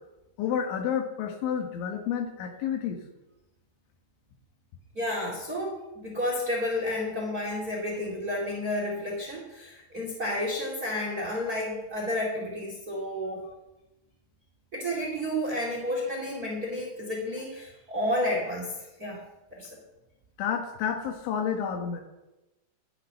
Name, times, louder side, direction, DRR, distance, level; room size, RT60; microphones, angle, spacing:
voice 1, 0.4-3.0 13.4-13.5 20.4-22.0, left 8 dB, 80° left, 4 dB, 3.9 m, -30 dB
voice 2, 4.9-13.4 14.7-19.2 19.5-19.7, left 1 dB, 30° right, -1 dB, 1.8 m, -31 dB
11.5 x 11.0 x 5.6 m, 0.98 s
omnidirectional pair, 5.4 m